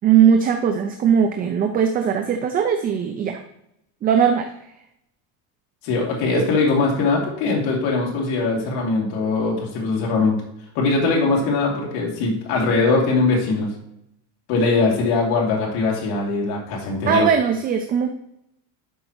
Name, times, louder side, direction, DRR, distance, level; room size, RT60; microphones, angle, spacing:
voice 1, 0.0-3.4 4.0-4.5 17.1-18.1, right 7 dB, 20° right, 5 dB, 0.4 m, -19 dB
voice 2, 5.8-10.4 10.7-13.7 14.5-17.3, left 3 dB, 65° left, -2 dB, 2.6 m, -21 dB
11.5 x 5.3 x 3.0 m, 0.79 s
cardioid pair, 155°, 43 cm